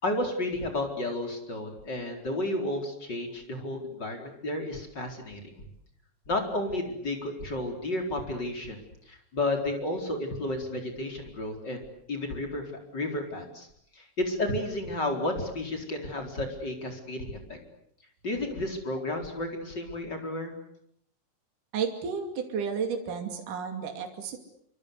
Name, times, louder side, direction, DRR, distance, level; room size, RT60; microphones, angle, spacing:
voice 1, 0.0-5.4 6.3-13.7 13.9-17.6 18.2-20.6, left 1 dB, 30° left, 4 dB, 4.8 m, -32 dB
voice 2, 21.7-24.4, right 6 dB, 65° right, 4 dB, 4.2 m, -32 dB
26.0 x 25.5 x 8.3 m, 0.70 s
omnidirectional pair, 3.9 m